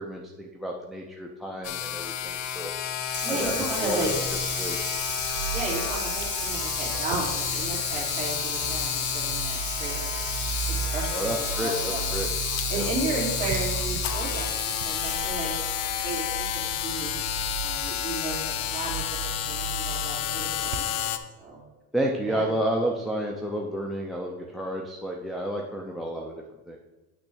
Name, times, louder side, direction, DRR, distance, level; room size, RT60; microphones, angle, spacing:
voice 1, 0.0-2.7 3.3-4.1 4.6-4.8 11.1-12.3 12.7-12.9 21.9-26.3 26.7-26.8, right 1 dB, ahead, 0 dB, 0.3 m, -31 dB
sound 1, 1.6-21.2, left 10 dB, 55° left, 0.6 m, -31 dB
Water tap faucet / Sink (filling or washing), 3.0-15.5, left 2 dB, 35° left, 1.4 m, -33 dB
voice 2, 3.2-4.1 5.5-10.0 10.9-12.0 12.7-17.1 17.6-21.1 21.4-21.6 22.3-22.5, right 3 dB, 20° right, -6 dB, 2.8 m, -34 dB
sound 2, 3.4-20.8, right 8 dB, 85° right, 0.7 m, -37 dB
8.9 x 3.2 x 6.1 m, 1.1 s
cardioid pair, 170°, 32 cm